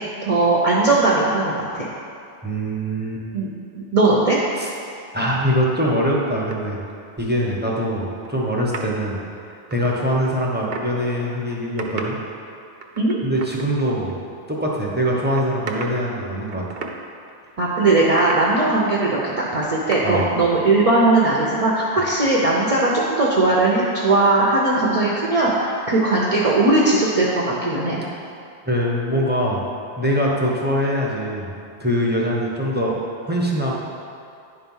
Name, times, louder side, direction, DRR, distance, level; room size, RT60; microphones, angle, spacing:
voice 1, 0.2-1.9 3.3-3.5 3.7-4.4 13.0-13.2 17.6-28.0, right 2 dB, 35° right, -4 dB, 0.9 m, -19 dB
voice 2, 2.4-3.2 4.6-4.7 5.1-6.8 7.2-9.2 9.7-12.2 13.2-14.1 14.5-16.6 20.0-20.3 28.7-29.7 30.0-31.5 31.8-33.0 33.2-33.8, equal, 10° right, -4 dB, 1.0 m, -23 dB
sound 1, 6.5-6.9 8.1-8.3 8.7-8.8 9.5-10.9 11.4-12.2 12.8-14.1 14.4-14.5 15.3-16.1 16.4-17.0 17.3-17.4 18.1-18.5 19.4-19.5 19.6-20.3, right 4 dB, 60° right, 1.0 m, -33 dB
10.5 x 4.6 x 5.5 m, 2.5 s
omnidirectional pair, 1.1 m